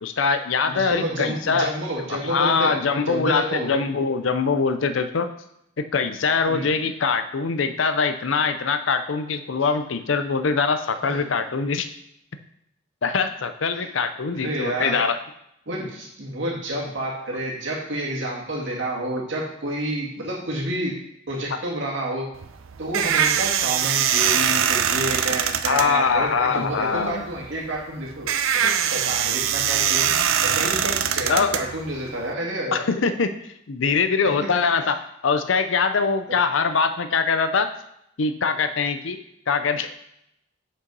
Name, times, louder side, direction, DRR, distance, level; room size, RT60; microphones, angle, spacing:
voice 1, 0.0-1.7 2.1-5.3 5.8-11.9 13.0-15.2 25.7-27.2 31.3-31.6 32.7-33.3 33.7-35.0 35.2-37.7 38.2-39.2 39.5-39.9, left 5 dB, 70° left, 9 dB, 0.6 m, -23 dB
voice 2, 0.7-3.8 6.5-6.7 11.0-11.2 14.3-15.1 15.7-21.0 21.3-22.3 22.8-28.3 28.6-32.8 34.2-34.5 36.3-36.4, right 1 dB, 60° right, -3 dB, 2.0 m, -29 dB
sound 1, 22.3-32.3, right 8 dB, 80° right, 0.6 m, -23 dB
6.7 x 5.6 x 5.3 m, 0.77 s
head